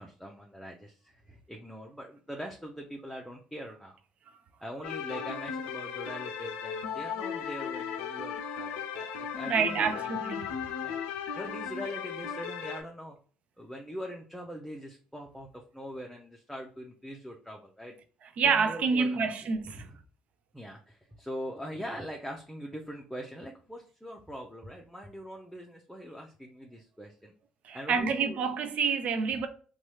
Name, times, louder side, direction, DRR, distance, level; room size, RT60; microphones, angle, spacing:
voice 1, 0.0-4.0 4.6-10.1 10.8-11.0 11.4-13.2 13.6-18.0 18.4-19.3 19.7-19.9 20.5-27.3 27.7-28.5, equal, ahead, 0.6 m, -42 dB
sound 1, 4.8-12.8, left 7 dB, 80° left, 0.4 m, -36 dB
voice 2, 9.5-10.4 18.4-19.9 27.6-29.5, right 5 dB, 60° right, 0.4 m, -28 dB
3.0 x 2.3 x 3.1 m
hypercardioid pair, 60°, 3 cm